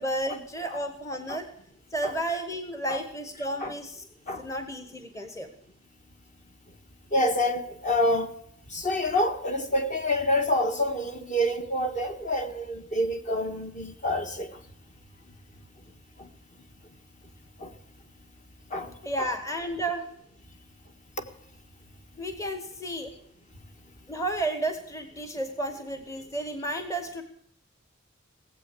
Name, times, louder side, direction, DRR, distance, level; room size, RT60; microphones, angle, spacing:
voice 1, 0.0-1.5 1.9-4.0 4.4-5.5 19.0-20.1 22.2-23.1 24.1-27.2, right 1 dB, 15° left, 1.2 m, -32 dB
voice 2, 7.1-8.3 8.7-14.5 16.2-16.3 17.6-17.7 18.7-18.9, left 1 dB, 40° left, 1.7 m, -27 dB
18.5 x 8.1 x 8.3 m
head